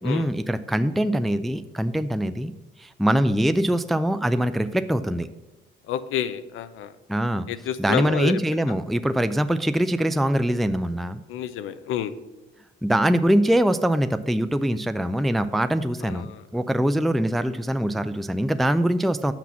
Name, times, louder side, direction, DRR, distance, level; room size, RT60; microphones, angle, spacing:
voice 1, 0.0-2.5 2.8-5.3 7.1-7.5 7.8-11.2 12.8-19.3, right 1 dB, ahead, 11 dB, 0.4 m, -23 dB
voice 2, 5.9-6.9 7.5-8.4 11.3-12.1 16.0-16.4, left 10 dB, 90° left, 12 dB, 0.6 m, -29 dB
6.0 x 6.0 x 7.0 m, 1.1 s
cardioid pair, 90°, 20 cm